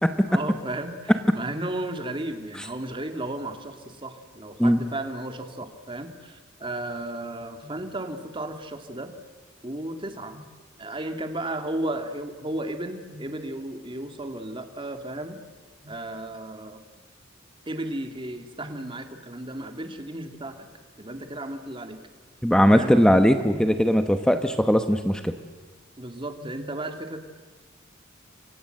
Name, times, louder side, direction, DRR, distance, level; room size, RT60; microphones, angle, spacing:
voice 1, 0.3-9.1 9.6-10.4 10.8-15.4 15.8-16.8 17.7-20.7 21.0-22.0 22.7-23.0 23.5-23.7 26.0-27.2, right 1 dB, 25° right, 6 dB, 2.0 m, -34 dB
voice 2, 22.4-25.3, equal, 5° left, 8 dB, 0.9 m, -19 dB
28.5 x 24.0 x 7.8 m, 1.3 s
head